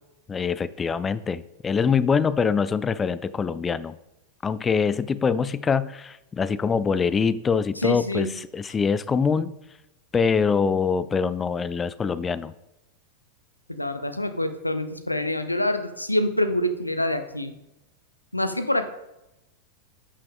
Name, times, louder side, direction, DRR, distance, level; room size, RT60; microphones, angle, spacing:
voice 1, 0.3-4.0 4.4-9.6 10.1-12.5, left 5 dB, 20° left, 17 dB, 0.3 m, -24 dB
voice 2, 7.8-8.3 13.7-17.5 18.3-18.9, left 1 dB, 85° left, 10 dB, 0.6 m, -26 dB
11.0 x 5.8 x 3.6 m, 0.93 s
figure-of-eight pair, 90°, 0 cm